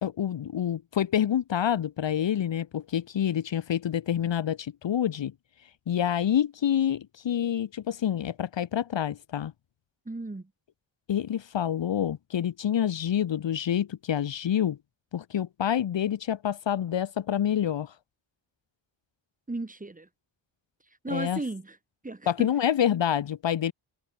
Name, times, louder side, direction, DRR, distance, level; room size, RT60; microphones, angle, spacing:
voice 1, 0.0-5.3 5.9-9.5 11.1-14.8 15.1-17.9 21.1-21.4 22.3-23.7, left 10 dB, 65° left, 1.0 m, -27 dB
voice 2, 10.0-10.5 19.5-20.1 21.0-21.8 22.0-22.5, right 2 dB, 15° right, 3.1 m, -35 dB
wide cardioid pair, 170°, 47 cm